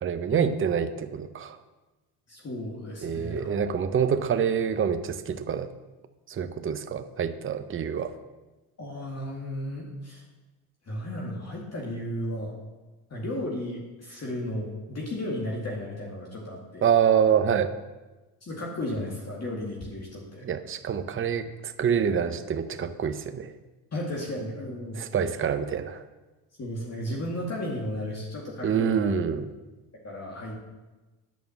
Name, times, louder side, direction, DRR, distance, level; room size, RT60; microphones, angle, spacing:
voice 1, 0.0-1.6 3.0-5.7 6.3-8.1 16.8-17.8 20.4-23.5 25.0-26.0 28.6-29.5, right 7 dB, 30° right, 10 dB, 0.8 m, -26 dB
voice 2, 2.3-3.5 8.8-10.2 10.8-12.6 13.1-16.9 18.4-20.5 23.9-25.0 26.6-29.1 30.0-30.6, left 1 dB, 35° left, -3 dB, 2.4 m, -34 dB
9.4 x 5.5 x 7.3 m, 1.2 s
supercardioid pair, 75°, 44 cm